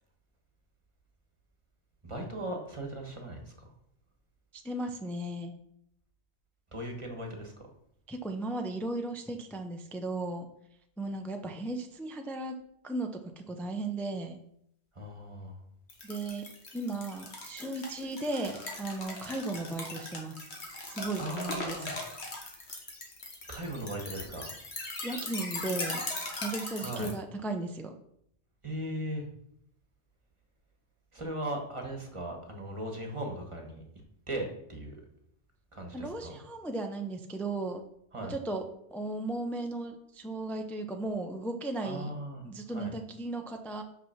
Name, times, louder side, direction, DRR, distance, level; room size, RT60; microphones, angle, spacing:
voice 1, 2.0-3.7 6.7-7.7 14.9-15.6 21.2-22.0 23.5-24.5 26.8-27.1 28.6-29.3 31.1-33.8 34.3-35.0 35.7-36.4 38.1-38.4 41.8-42.9, right 1 dB, 30° right, 1 dB, 1.4 m, -38 dB
voice 2, 4.6-5.5 8.1-10.5 11.0-12.5 12.8-13.1 13.5-14.4 16.0-16.4 16.7-20.4 20.9-21.2 21.6-21.8 25.0-26.0 26.4-27.9 35.9-37.8 38.3-38.6 38.9-42.1 42.4-43.8, right 2 dB, ahead, 4 dB, 0.4 m, -35 dB
sound 1, 15.9-27.1, left 2 dB, 70° left, 1.8 m, -39 dB
5.9 x 5.8 x 5.8 m, 0.74 s
omnidirectional pair, 1.1 m